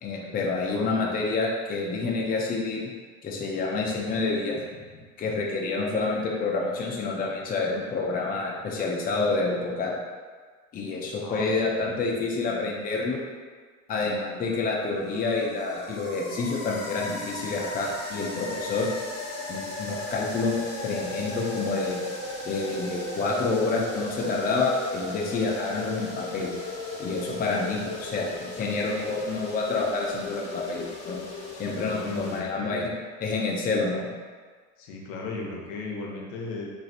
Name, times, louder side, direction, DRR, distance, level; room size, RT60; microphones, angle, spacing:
voice 1, 0.0-2.9 3.2-4.6 5.2-9.9 10.7-13.2 13.9-18.9 19.5-20.6 20.8-22.0 22.5-26.5 27.0-31.2 31.6-32.9 33.2-34.1, left 3 dB, 25° left, -1 dB, 0.5 m, -28 dB
voice 2, 0.7-1.0 4.5-4.6 4.9-5.0 11.2-12.0 27.6-27.8 31.7-32.9 34.8-36.7, left 3 dB, 70° left, -1 dB, 0.7 m, -37 dB
sound 1, 14.5-32.4, left 2 dB, 40° left, 1.0 m, -37 dB
3.0 x 2.5 x 2.5 m, 1.5 s
hypercardioid pair, 80°, 40 cm